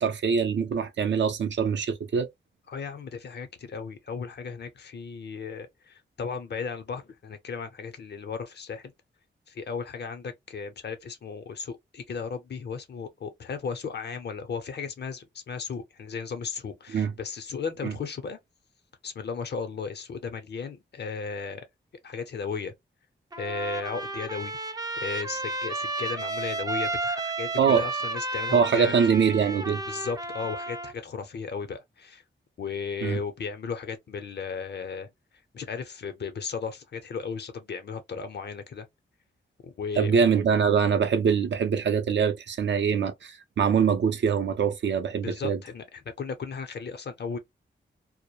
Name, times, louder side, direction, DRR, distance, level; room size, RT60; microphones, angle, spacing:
voice 1, 0.0-2.3 16.9-17.1 17.8-17.9 27.6-27.8 28.5-29.8 33.0-33.2 40.0-45.6, right 6 dB, 70° right, 0.5 m, -24 dB
voice 2, 2.7-8.9 9.5-18.4 19.0-21.6 22.0-22.7 23.4-24.6 25.0-28.9 29.9-32.2 32.6-35.1 35.5-38.9 39.6-40.2 45.2-47.4, left 5 dB, 60° left, 0.6 m, -35 dB
Trumpet, 23.3-30.9, right 2 dB, 20° right, 0.4 m, -32 dB
2.2 x 2.0 x 2.8 m
wide cardioid pair, 125°, 20 cm